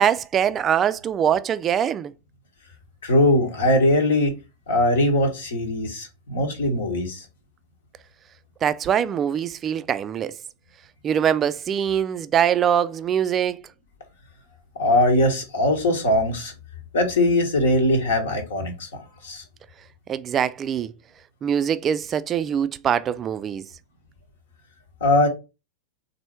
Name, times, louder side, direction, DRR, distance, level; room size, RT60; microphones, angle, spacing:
voice 1, 0.0-2.1 8.6-10.4 11.0-13.6 20.1-20.9 21.4-23.6, right 8 dB, 25° right, 0.3 m, -23 dB
voice 2, 3.0-4.4 4.7-7.2 14.8-16.5 16.9-19.4 25.0-25.3, left 1 dB, 60° left, 1.1 m, -21 dB
4.2 x 2.7 x 4.3 m
figure-of-eight pair, 90°, 0 cm